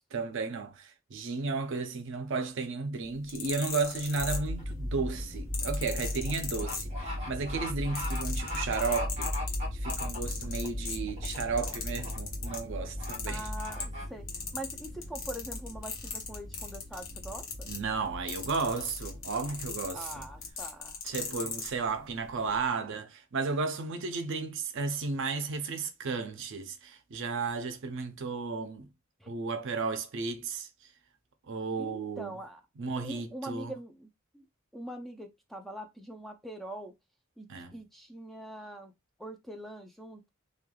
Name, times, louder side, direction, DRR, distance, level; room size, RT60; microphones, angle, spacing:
voice 1, 0.1-9.3 9.7-13.5 17.7-20.3 21.0-28.9 29.3-30.7 31.5-32.4 32.8-33.7 37.5-37.8, right 4 dB, 60° right, 0.5 m, -34 dB
sound 1, 3.1-4.8 5.5-7.3 7.6-12.7 13.0-14.0 14.3-21.7 22.5-22.6, left 6 dB, 65° left, 0.8 m, -38 dB
sound 2, 4.2-20.5, left 1 dB, 15° left, 1.0 m, -38 dB
sound 3, 4.6-4.8 5.2-10.7 11.1-11.4 11.7-12.2 12.4-12.6 13.0-13.2 13.6-14.1, left 2 dB, 30° right, 1.0 m, -40 dB
voice 2, 13.3-17.7 19.9-21.0 29.2-29.3 31.8-32.6 33.0-34.1 34.3-34.4 34.7-36.9 37.4-38.9 39.2-40.3, right 1 dB, ahead, 0.4 m, -43 dB
3.1 x 2.2 x 2.2 m
head